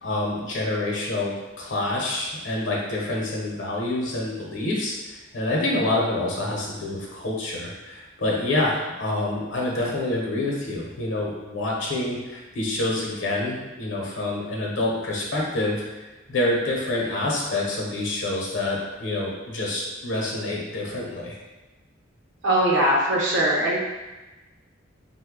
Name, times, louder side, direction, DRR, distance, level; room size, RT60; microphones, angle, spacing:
voice 1, 0.0-15.8 16.3-21.4, left 2 dB, 75° left, -2 dB, 0.7 m, -27 dB
voice 2, 22.4-23.8, right 1 dB, 60° right, -5 dB, 0.7 m, -20 dB
3.1 x 2.2 x 3.5 m, 1.2 s
head